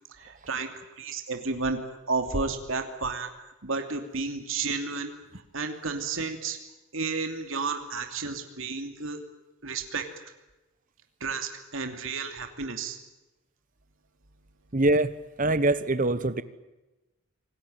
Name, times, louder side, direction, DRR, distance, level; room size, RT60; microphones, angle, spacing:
voice 1, 0.2-0.7 1.0-1.8 2.1-3.3 3.6-5.1 5.5-6.6 6.9-9.2 9.6-10.1 11.2-13.0, right 4 dB, 65° right, 5 dB, 2.7 m, -31 dB
voice 2, 14.7-16.4, right 2 dB, 40° right, 13 dB, 1.2 m, -24 dB
27.0 x 19.5 x 9.0 m, 1.1 s
head